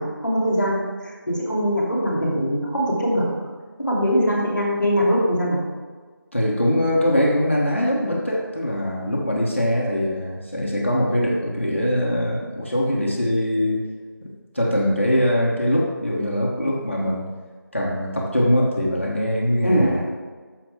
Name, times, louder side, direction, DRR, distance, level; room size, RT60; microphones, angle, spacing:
voice 1, 0.0-3.3 3.8-5.6 19.6-19.9, equal, 5° right, -19 dB, 1.3 m, -22 dB
voice 2, 6.3-13.8 14.2-17.3 17.7-20.1, equal, 35° left, -2 dB, 1.1 m, -22 dB
13.0 x 5.3 x 3.6 m, 1.5 s
figure-of-eight pair, 175°, 12 cm